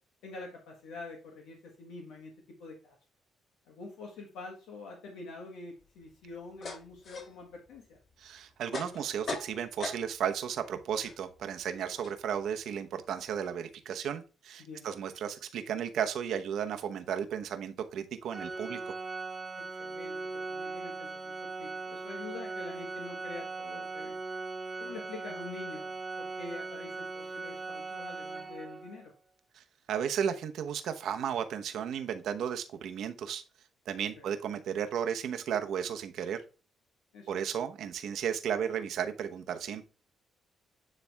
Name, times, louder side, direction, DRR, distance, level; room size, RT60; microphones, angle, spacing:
voice 1, 0.2-2.3 2.6-3.0 3.6-8.0 14.6-14.9 19.6-24.2 24.8-29.1 34.2-34.3 37.1-37.4, left 3 dB, 90° left, 0 dB, 1.5 m, -46 dB
sound 1, 5.8-10.4 10.7-13.6, left 3 dB, 55° left, 2.4 m, -43 dB
voice 2, 8.2-18.9 29.5-33.4 33.9-36.4 37.3-39.8, right 8 dB, 75° right, 7 dB, 0.9 m, -34 dB
Organ, 18.3-29.0, right 3 dB, 20° right, 0.9 m, -39 dB
9.8 x 3.4 x 3.4 m, 0.34 s
cardioid pair, 90°, 0 cm